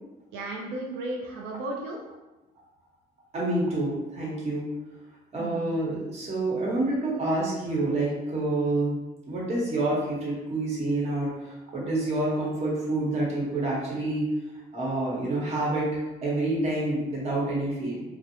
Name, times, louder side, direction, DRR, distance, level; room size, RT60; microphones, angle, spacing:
voice 1, 0.3-2.0 5.4-5.7, right 2 dB, 90° right, -1 dB, 0.4 m, -34 dB
voice 2, 3.3-4.7 5.3-8.9 9.3-14.2 14.7-18.0, right 2 dB, 40° right, -5 dB, 1.0 m, -28 dB
2.5 x 2.1 x 2.8 m, 1.1 s
cardioid pair, 110°, 17 cm